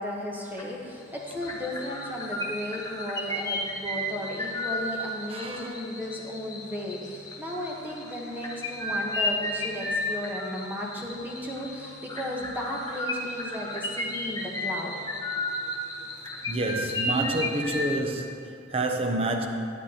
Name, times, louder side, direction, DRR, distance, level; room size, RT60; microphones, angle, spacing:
voice 1, 0.0-14.9, left 1 dB, 10° right, -3 dB, 1.0 m, -35 dB
sound 1, 0.6-0.9 1.1-17.9, left 1 dB, 20° left, 0.7 m, -33 dB
voice 2, 5.3-5.8 15.5-15.7 16.5-19.5, right 2 dB, 30° right, 4 dB, 0.6 m, -29 dB
11.5 x 8.1 x 2.9 m, 2.4 s
head